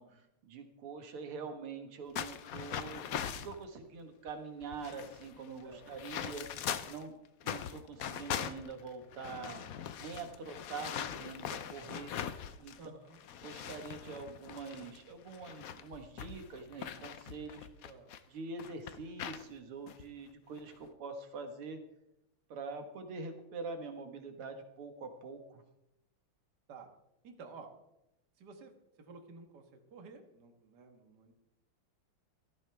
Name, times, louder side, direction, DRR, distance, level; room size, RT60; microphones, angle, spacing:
voice 1, 0.0-6.5 6.8-7.1 7.4-9.7 10.0-12.1 12.6-12.8 13.4-17.7 18.3-21.8 22.5-25.6, right 4 dB, 80° right, 6 dB, 2.5 m, -45 dB
sound 1, 2.2-3.6 4.3-4.4 4.6-7.0 7.4-12.9 13.1-18.2 18.6-19.4 19.9-20.0 20.6-20.9, left 9 dB, 70° left, 0.8 m, -41 dB
voice 2, 12.8-13.2 17.8-18.1 26.7-26.9 27.2-27.7 28.4-28.7 29.0-31.3, right 4 dB, 50° right, 5 dB, 2.0 m, -52 dB
17.0 x 14.0 x 3.4 m, 0.86 s
omnidirectional pair, 2.4 m